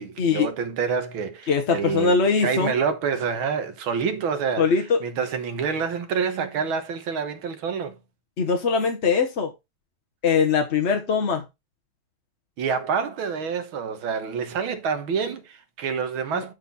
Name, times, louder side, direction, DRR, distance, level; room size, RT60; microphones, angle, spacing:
voice 1, 0.0-8.0 12.6-16.5, right 6 dB, 85° right, 2.0 m, -27 dB
voice 2, 1.5-2.7 4.6-5.0 8.4-9.5 10.2-11.4 16.4-16.5, left 5 dB, 45° left, 1.0 m, -21 dB
11.5 x 4.1 x 4.0 m
omnidirectional pair, 2.2 m